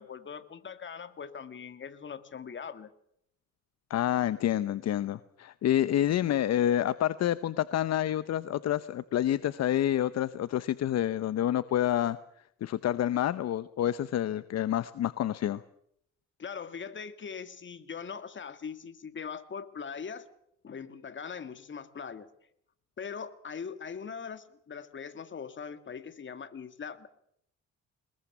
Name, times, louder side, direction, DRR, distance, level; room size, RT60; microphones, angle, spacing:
voice 1, 0.0-2.9 16.4-20.3 20.6-22.3 23.0-27.1, left 6 dB, 40° left, 11 dB, 2.0 m, -41 dB
voice 2, 3.9-12.2 12.6-15.6, left 11 dB, 60° left, 15 dB, 0.8 m, -28 dB
22.5 x 21.0 x 7.2 m, 0.72 s
cardioid pair, 100°, 29 cm